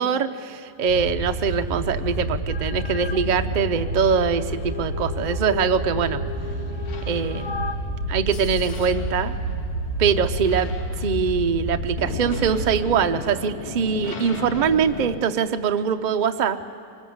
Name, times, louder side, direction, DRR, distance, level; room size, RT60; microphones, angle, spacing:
voice 1, 0.0-6.2 7.1-7.7 8.1-9.3 10.0-16.6, right 6 dB, 45° right, 7 dB, 0.6 m, -23 dB
sound 1, 0.8-12.7, right 1 dB, 90° left, 7.2 m, -29 dB
sound 2, 2.5-3.2 3.7-7.8, left 5 dB, 40° left, 0.3 m, -36 dB
sound 3, 2.8-15.2, left 3 dB, 60° left, 1.7 m, -39 dB
24.5 x 20.0 x 7.9 m, 2.4 s
omnidirectional pair, 1.8 m